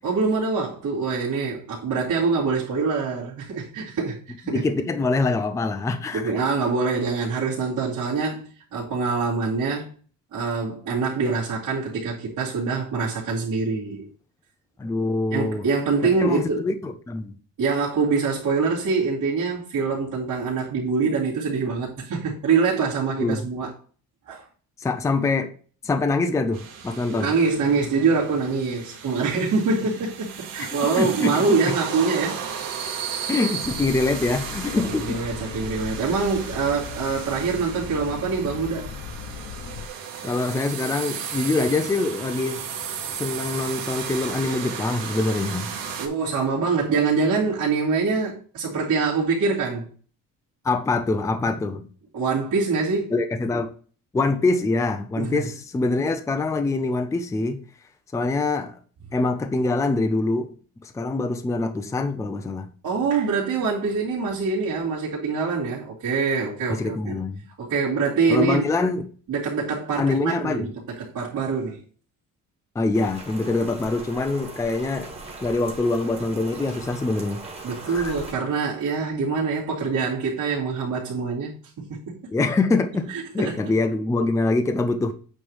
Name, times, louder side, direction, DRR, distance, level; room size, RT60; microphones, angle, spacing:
voice 1, 0.0-4.6 6.1-9.9 10.3-14.1 15.3-16.7 17.6-23.7 24.3-24.4 27.1-32.4 34.9-38.9 46.0-49.9 52.1-53.1 55.2-55.4 62.8-67.2 67.6-68.6 69.3-71.8 77.6-82.2 83.1-83.6, right 4 dB, 65° right, 2.6 m, -24 dB
voice 2, 4.5-6.3 14.8-15.6 16.0-17.3 23.2-23.4 24.8-25.5 25.8-27.3 30.6-30.7 30.9-31.8 33.3-35.2 40.2-42.6 43.2-45.7 50.6-51.9 53.1-53.7 54.1-57.7 58.1-58.8 59.1-60.5 60.8-62.7 66.7-67.4 68.3-69.0 70.0-70.7 72.8-75.1 75.4-77.4 77.8-78.1 82.3-83.1 83.3-85.1, left 3 dB, 10° left, 0.4 m, -24 dB
sound 1, 26.5-46.1, right 7 dB, 85° right, 1.6 m, -34 dB
sound 2, 33.6-39.9, left 7 dB, 55° left, 1.0 m, -38 dB
Rain, 72.9-78.3, right 3 dB, 20° right, 1.7 m, -40 dB
8.7 x 3.2 x 5.4 m
cardioid pair, 175°, 33 cm